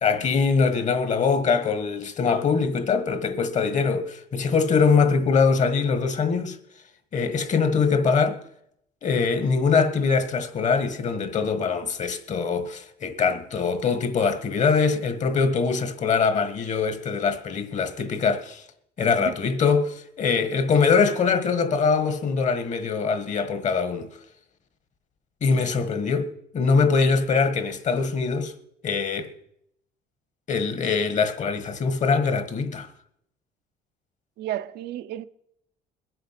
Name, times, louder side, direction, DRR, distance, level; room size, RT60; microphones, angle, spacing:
voice 1, 0.0-6.6 7.1-8.4 9.0-18.6 19.0-24.1 25.4-28.5 28.8-29.3 30.5-32.9, left 5 dB, 45° left, 1.6 m, -23 dB
voice 2, 34.4-35.2, right 12 dB, 75° right, 0.7 m, -32 dB
21.5 x 7.8 x 5.8 m
cardioid pair, 110°, 17 cm